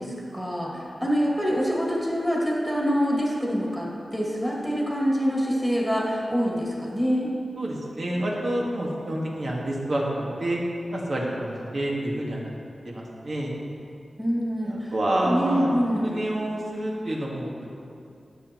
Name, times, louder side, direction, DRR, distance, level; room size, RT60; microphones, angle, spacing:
voice 1, 0.0-7.3 14.2-16.2, equal, ahead, -5 dB, 2.2 m, -26 dB
voice 2, 7.6-10.6 10.9-12.5 12.9-13.5 14.6-15.7 16.0-17.7, right 1 dB, 55° right, -3 dB, 1.7 m, -28 dB
15.0 x 7.5 x 3.0 m, 2.5 s
wide cardioid pair, 130°, 0 cm